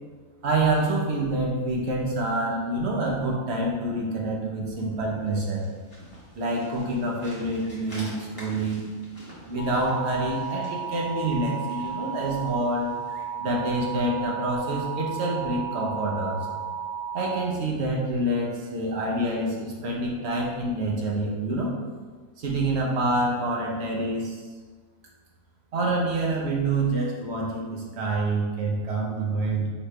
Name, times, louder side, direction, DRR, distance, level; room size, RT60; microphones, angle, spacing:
voice 1, 0.4-5.6 6.4-8.9 9.4-12.9 13.4-16.4 17.1-21.8 22.4-24.4 25.7-29.7, right 2 dB, 55° right, -2 dB, 1.0 m, -27 dB
sound 1, 5.1-13.4, equal, 15° left, 1.3 m, -49 dB
sound 2, 9.6-17.4, right 6 dB, 50° left, 0.9 m, -33 dB
4.9 x 3.2 x 3.2 m, 1.5 s
omnidirectional pair, 1.4 m